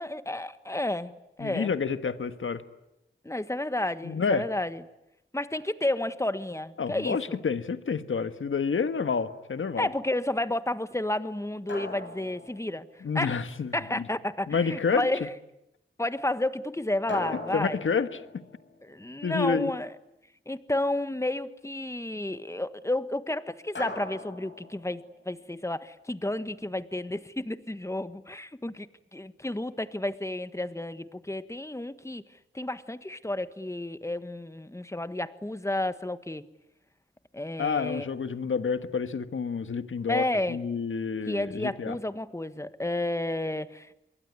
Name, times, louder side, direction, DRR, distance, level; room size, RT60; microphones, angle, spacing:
voice 1, 0.0-1.7 3.2-4.8 5.3-7.4 9.8-12.9 13.1-13.4 13.7-15.3 16.0-17.8 18.8-19.9 20.5-28.9 29.1-32.2 32.5-36.4 37.3-38.1 40.1-40.6 41.3-43.9, left 1 dB, 15° left, 12 dB, 1.5 m, -31 dB
voice 2, 1.4-2.6 4.0-4.4 6.8-9.9 13.0-14.0 14.5-15.0 17.5-18.2 19.2-19.7 37.6-42.0, left 5 dB, 85° left, 10 dB, 1.5 m, -29 dB
sound 1, 9.1-9.6 11.7-13.5 17.1-19.7 23.8-25.4, left 3 dB, 70° left, 7.5 m, -41 dB
26.5 x 22.5 x 9.6 m, 0.88 s
wide cardioid pair, 70°, 20 cm